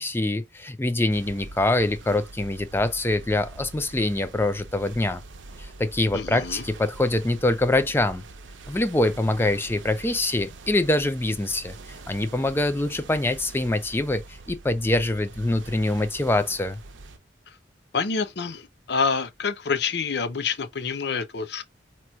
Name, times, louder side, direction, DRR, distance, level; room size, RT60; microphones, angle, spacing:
voice 1, 0.0-5.2 5.6-8.2 8.7-16.8, left 2 dB, 10° left, 0.4 m, -24 dB
sound 1, 1.1-17.2, right 2 dB, 85° right, 0.7 m, -44 dB
voice 2, 6.1-6.6 17.5-17.6 17.9-21.6, left 5 dB, 60° left, 0.6 m, -27 dB
4.3 x 3.0 x 2.3 m
head